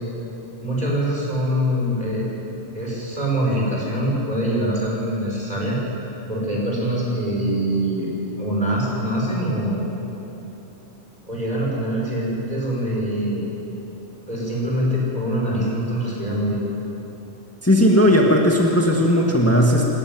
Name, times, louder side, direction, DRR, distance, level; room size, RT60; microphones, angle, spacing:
voice 1, 0.6-2.2 2.7-5.8 6.3-8.1 8.4-9.8 11.3-13.4 14.3-16.6, equal, 35° right, -4 dB, 6.5 m, -24 dB
voice 2, 17.6-19.8, equal, 10° left, -1 dB, 1.9 m, -16 dB
26.5 x 12.5 x 9.7 m, 3.0 s
omnidirectional pair, 1.3 m